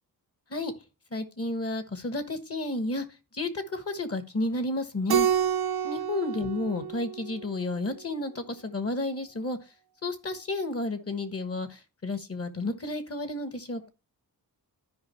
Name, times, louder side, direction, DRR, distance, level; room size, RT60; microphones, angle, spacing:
voice 1, 1.1-3.0 3.3-5.3 5.8-9.6 10.0-11.7 12.0-13.9, left 2 dB, 40° left, 9 dB, 1.4 m, -31 dB
Keyboard (musical), 5.1-7.7, right 8 dB, 80° right, 0.7 m, -28 dB
13.0 x 5.3 x 3.1 m, 0.30 s
wide cardioid pair, 125°, 37 cm